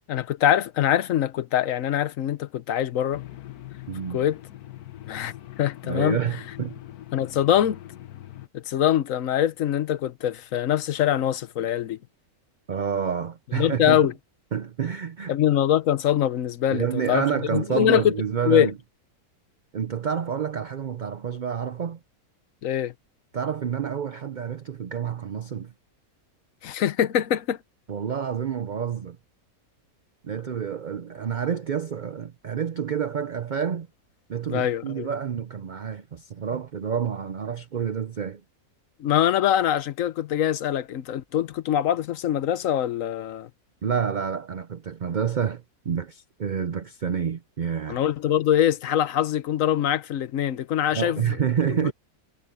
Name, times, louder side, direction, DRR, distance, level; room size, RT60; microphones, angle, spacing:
voice 1, 0.1-3.2 4.1-4.4 5.1-6.2 7.1-7.8 8.5-12.0 13.5-14.1 15.3-17.2 17.5-18.1 18.5-18.7 22.6-22.9 26.6-27.6 34.5-35.1 39.0-43.5 47.9-51.2 51.8-51.9, left 10 dB, 65° left, 1.2 m, -23 dB
sound 1, 3.1-8.5, left 14 dB, 85° left, 1.4 m, -42 dB
voice 2, 3.9-4.2 5.8-6.8 12.7-14.1 14.5-15.4 16.7-18.8 19.7-22.0 23.3-25.7 27.9-29.2 30.2-33.9 34.3-38.4 43.8-48.0 50.9-51.9, right 7 dB, 50° right, 0.6 m, -28 dB
omnidirectional pair, 1.6 m